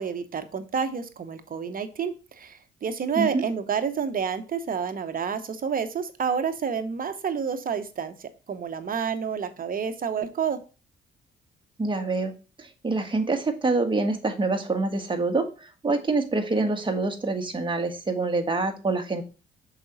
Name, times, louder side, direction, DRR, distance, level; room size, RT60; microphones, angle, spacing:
voice 1, 0.0-8.1 8.5-10.6, right 6 dB, 45° right, 9 dB, 1.0 m, -29 dB
voice 2, 11.8-12.3 12.6-19.2, right 3 dB, 25° right, 5 dB, 1.5 m, -26 dB
6.2 x 5.0 x 4.1 m, 0.32 s
cardioid pair, 90°, 20 cm